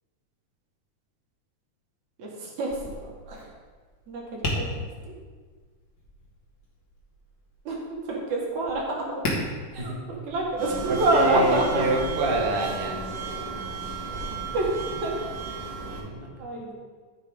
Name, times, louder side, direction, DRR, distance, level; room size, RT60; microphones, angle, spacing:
voice 1, 2.2-2.7 3.0-3.5 4.1-4.9 7.7-7.8 8.1-9.2 9.7-11.8 14.5-14.7 15.0-15.1 16.4-16.7, right 2 dB, 60° right, -2 dB, 2.9 m, -27 dB
Tap, 2.6-12.3, left 1 dB, 35° left, 1.9 m, -38 dB
sound 1, 10.6-16.0, right 4 dB, 35° right, 1.5 m, -34 dB
voice 2, 10.9-13.0 15.9-16.3, right 2 dB, 80° right, -1 dB, 0.5 m, -26 dB
14.0 x 6.6 x 3.7 m, 1.5 s
omnidirectional pair, 3.7 m